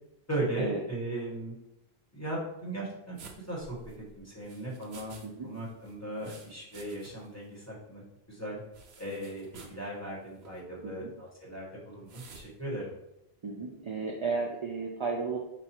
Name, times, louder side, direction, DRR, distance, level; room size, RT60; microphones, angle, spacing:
voice 1, 0.3-1.5 2.1-3.8 4.1-5.2 5.4-8.0 8.3-8.6 9.0-13.0, right 1 dB, 15° left, -5 dB, 1.1 m, -37 dB
sound 1, 3.2-5.3 5.5-7.3 7.6-7.7 8.7-9.8 10.4-10.6 12.1-12.5, right 4 dB, 80° right, 0.9 m, -52 dB
voice 2, 13.4-15.4, right 4 dB, 55° right, -1 dB, 0.3 m, -34 dB
4.0 x 2.3 x 4.3 m, 0.86 s
omnidirectional pair, 1.1 m